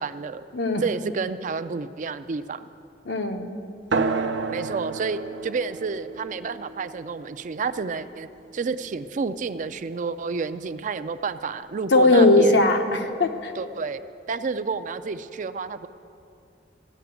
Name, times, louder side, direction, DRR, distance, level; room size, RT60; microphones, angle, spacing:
voice 1, 0.0-0.4 0.8-2.7 4.5-8.3 8.5-12.6 13.5-14.0 14.3-15.9, right 4 dB, 45° right, 12 dB, 0.4 m, -30 dB
voice 2, 3.1-3.5 11.9-13.5, left 2 dB, 75° left, 5 dB, 1.0 m, -19 dB
sound 1, 3.9-8.9, right 4 dB, 80° right, 0.7 m, -31 dB
14.0 x 6.8 x 9.4 m, 2.5 s
head